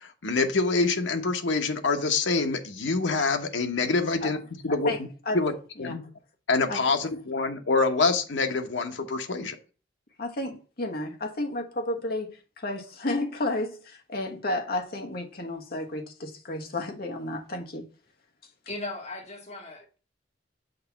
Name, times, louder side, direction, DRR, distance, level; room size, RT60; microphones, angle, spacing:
voice 1, 0.0-4.4 4.6-4.9 5.3-5.5 5.8-6.0 6.5-9.6, left 3 dB, 90° left, 1.0 m, -26 dB
voice 2, 4.7-5.4 5.8-5.9 6.7-6.8 10.2-17.8, left 2 dB, 55° left, 1.1 m, -32 dB
voice 3, 18.7-20.0, left 2 dB, 40° left, 2.0 m, -37 dB
6.4 x 2.9 x 5.7 m
head